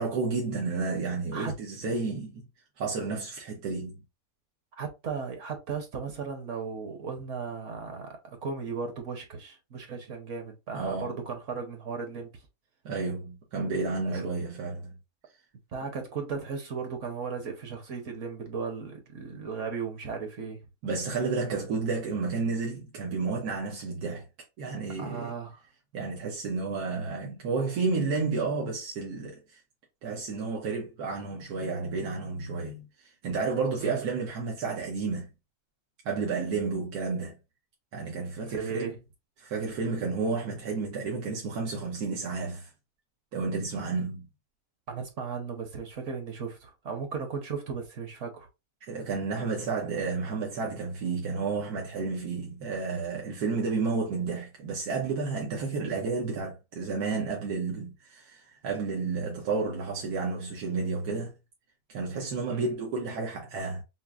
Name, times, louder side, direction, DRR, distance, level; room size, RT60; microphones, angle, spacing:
voice 1, 0.0-2.4 2.8-4.0 10.7-11.2 12.8-14.9 20.8-24.2 24.6-25.3 25.9-29.6 30.0-35.3 36.0-37.3 37.9-39.0 39.4-42.7 43.3-44.3 48.8-61.3 61.9-63.8, right 4 dB, 90° right, 1.3 m, -31 dB
voice 2, 4.8-12.3 14.1-14.3 15.7-20.6 25.0-25.6 33.8-34.0 38.4-38.9 44.9-48.5 62.5-62.8, right 5 dB, 60° right, 1.1 m, -36 dB
5.8 x 2.0 x 2.4 m
omnidirectional pair, 1.6 m